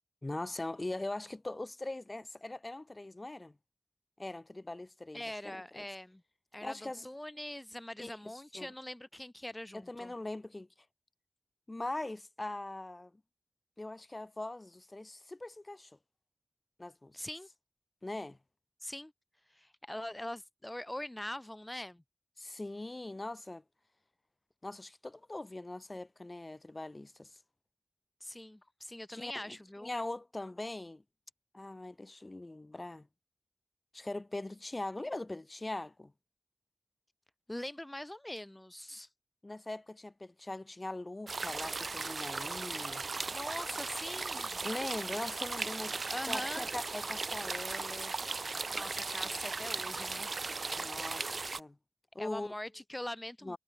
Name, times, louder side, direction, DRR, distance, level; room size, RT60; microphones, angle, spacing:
voice 1, 0.2-3.6 4.2-5.8 6.6-7.1 8.0-8.7 9.7-10.7 11.7-13.1 13.8-15.9 16.8-17.2 18.0-18.4 22.4-23.6 24.6-27.3 29.1-31.0 31.5-33.1 33.9-36.1 39.4-43.0 44.6-46.0 46.3-48.1 50.7-51.8 52.1-52.6 53.4-53.6, left 2 dB, 35° left, 4.4 m, -41 dB
voice 2, 5.1-6.2 6.5-10.1 17.1-17.5 18.8-19.1 19.5-22.0 28.2-30.0 37.5-39.1 43.3-44.7 46.1-46.7 48.7-50.3 52.2-53.6, left 1 dB, 20° left, 3.5 m, -43 dB
sound 1, 41.3-51.6, right 3 dB, 75° right, 1.5 m, -37 dB
wide cardioid pair, 55°, 0 cm